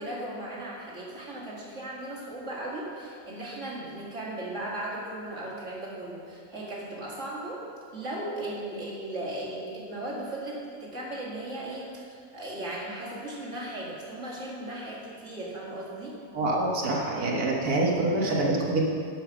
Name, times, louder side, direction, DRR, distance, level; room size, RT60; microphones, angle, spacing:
voice 1, 0.0-7.6 7.9-16.2, right 1 dB, 40° right, -4 dB, 2.4 m, -37 dB
voice 2, 16.3-18.8, right 2 dB, 55° right, -2 dB, 1.8 m, -26 dB
10.5 x 7.0 x 6.2 m, 2.2 s
omnidirectional pair, 1.9 m